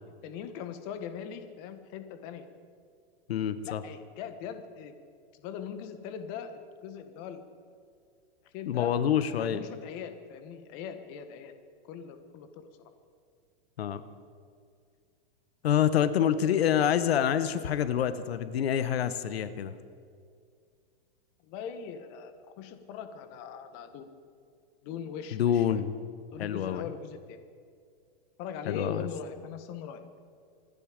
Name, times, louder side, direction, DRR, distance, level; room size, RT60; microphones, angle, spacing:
voice 1, 0.2-2.5 3.6-4.9 5.3-7.4 8.4-8.9 9.3-11.5 11.9-12.7 21.4-24.1 24.8-25.8 26.3-27.4 28.4-30.0, left 7 dB, 35° left, 9 dB, 1.4 m, -41 dB
voice 2, 3.3-3.8 8.7-9.6 13.8-14.0 15.6-19.8 25.3-25.9 26.4-26.8 28.7-29.1, left 9 dB, 85° left, 13 dB, 1.0 m, -27 dB
26.5 x 10.5 x 5.1 m, 2.2 s
supercardioid pair, 155°, 30 cm